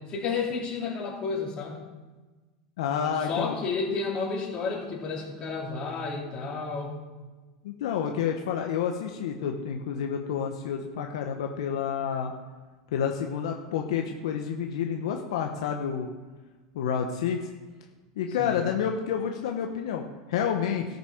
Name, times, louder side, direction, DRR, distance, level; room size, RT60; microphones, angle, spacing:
voice 1, 0.1-1.8 3.2-7.0 18.4-18.6, left 4 dB, 35° left, -4 dB, 3.7 m, -31 dB
voice 2, 2.8-3.5 7.6-12.3 12.9-16.1 16.7-17.4 18.2-20.9, left 8 dB, 80° left, 3 dB, 1.0 m, -29 dB
13.0 x 6.8 x 5.0 m, 1.3 s
supercardioid pair, 125°, 3 cm